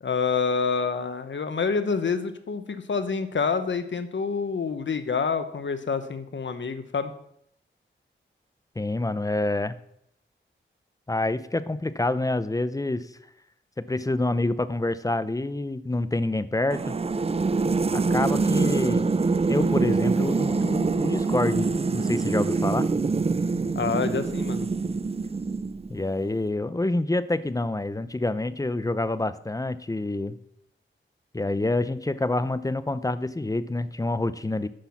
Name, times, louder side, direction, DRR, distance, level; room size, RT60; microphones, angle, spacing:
voice 1, 0.0-7.1 23.7-24.7, left 5 dB, 65° left, 10 dB, 1.0 m, -27 dB
voice 2, 8.8-9.7 11.1-13.1 13.8-16.9 17.9-19.1 19.5-22.9 25.9-30.4 31.3-34.7, left 2 dB, 15° left, 14 dB, 0.6 m, -27 dB
sound 1, 16.7-26.0, right 4 dB, 30° right, 0.4 m, -25 dB
10.0 x 6.0 x 7.1 m, 0.73 s
wide cardioid pair, 85°, 20 cm